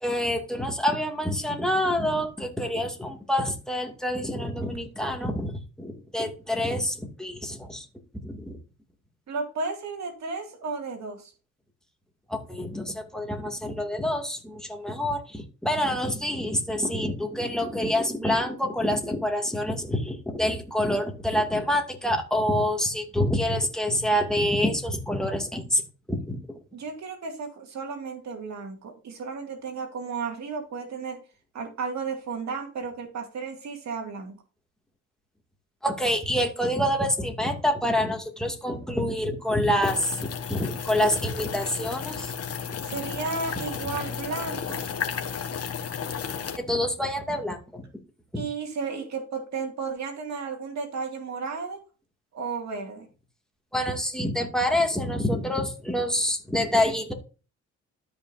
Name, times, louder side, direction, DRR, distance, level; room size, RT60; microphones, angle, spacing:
voice 1, 0.0-5.5 5.8-7.8 8.2-8.6 12.3-25.8 26.1-26.4 35.8-40.2 40.5-42.3 46.6-47.8 48.3-48.4 53.7-57.1, left 1 dB, ahead, 2.4 m, -27 dB
voice 2, 9.3-11.3 26.7-31.2 31.5-34.3 42.9-44.9 48.4-51.8 52.3-53.1, right 4 dB, 65° right, 2.4 m, -33 dB
sound 1, 39.8-46.6, left 7 dB, 55° left, 1.5 m, -33 dB
13.0 x 5.5 x 2.7 m
cardioid pair, 90°, 30 cm